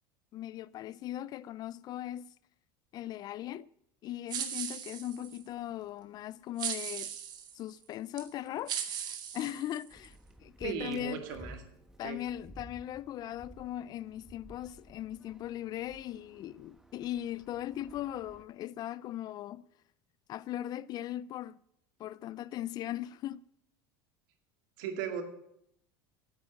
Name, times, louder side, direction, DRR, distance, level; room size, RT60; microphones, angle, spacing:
voice 1, 0.3-2.3 2.9-3.7 4.0-7.1 7.5-10.2 10.4-11.4 12.0-19.6 20.3-21.6 22.0-23.4, left 12 dB, 40° left, 0.4 m, -39 dB
sound 1, 4.3-5.4 6.6-7.5 8.2-8.3 8.7-10.1, right 9 dB, 40° right, 1.5 m, -38 dB
sound 2, 9.9-18.4, right 1 dB, 5° right, 1.1 m, -54 dB
voice 2, 10.6-11.6 12.0-12.2 24.8-25.2, right 7 dB, 75° right, 2.2 m, -36 dB
8.9 x 8.1 x 8.9 m
supercardioid pair, 130°, 11 cm